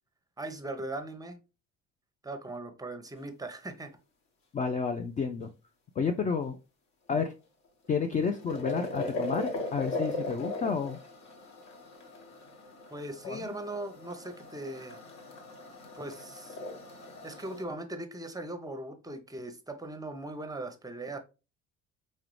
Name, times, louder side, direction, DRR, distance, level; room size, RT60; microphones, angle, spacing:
voice 1, 0.4-1.4 2.2-4.0 12.9-15.0 15.9-16.6 17.2-21.2, right 2 dB, 10° right, 0.7 m, -39 dB
voice 2, 4.5-5.5 6.0-6.6 7.1-7.3 7.9-11.0 13.2-13.5, left 5 dB, 20° left, 0.4 m, -30 dB
sound 1, 7.8-17.6, left 2 dB, 45° left, 1.2 m, -39 dB
4.8 x 3.1 x 3.1 m
figure-of-eight pair, 55°, 38 cm